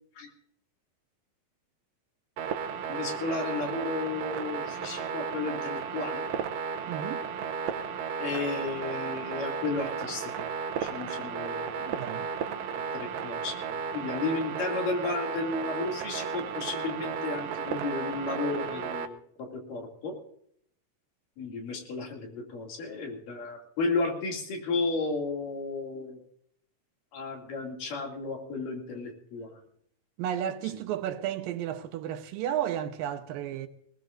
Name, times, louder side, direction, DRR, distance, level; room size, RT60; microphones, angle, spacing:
sound 1, 2.4-19.1, right 6 dB, 70° right, 1.6 m, -34 dB
voice 1, 2.9-6.2 8.2-10.5 10.7-11.7 12.9-20.2 21.4-26.2 27.1-29.5, left 3 dB, 70° left, 4.2 m, -33 dB
voice 2, 6.9-7.2 11.8-12.3 30.2-33.7, right 10 dB, 90° right, 2.7 m, -33 dB
19.5 x 19.0 x 2.6 m
omnidirectional pair, 4.0 m